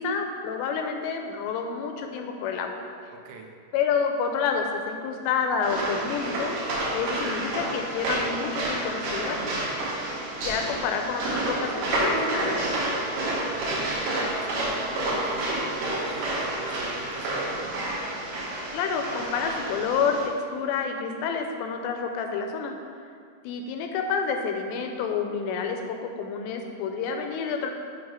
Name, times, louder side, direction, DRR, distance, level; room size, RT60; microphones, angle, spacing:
voice 1, 0.0-2.8 3.7-6.6 6.9-9.4 10.4-12.8 18.7-22.7 23.4-27.7, left 5 dB, 85° left, 4 dB, 2.8 m, -29 dB
voice 2, 3.1-3.5 13.4-17.9, right 4 dB, 85° right, 1 dB, 2.8 m, -43 dB
sound 1, 5.6-20.2, right 1 dB, 65° right, 2.5 m, -29 dB
8.0 x 3.1 x 5.6 m, 2.2 s
omnidirectional pair, 4.9 m